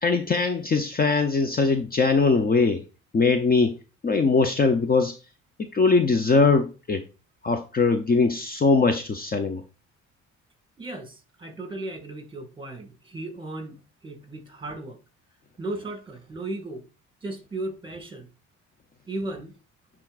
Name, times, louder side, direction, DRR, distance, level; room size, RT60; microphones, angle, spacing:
voice 1, 0.0-2.8 3.1-3.8 4.0-5.1 5.6-7.0 7.4-9.6, left 4 dB, 30° left, 0.7 m, -21 dB
voice 2, 10.8-15.0 15.6-16.9 17.2-18.3 19.1-19.6, right 2 dB, 15° right, 2.0 m, -36 dB
10.5 x 3.7 x 2.4 m
cardioid pair, 90°, 30 cm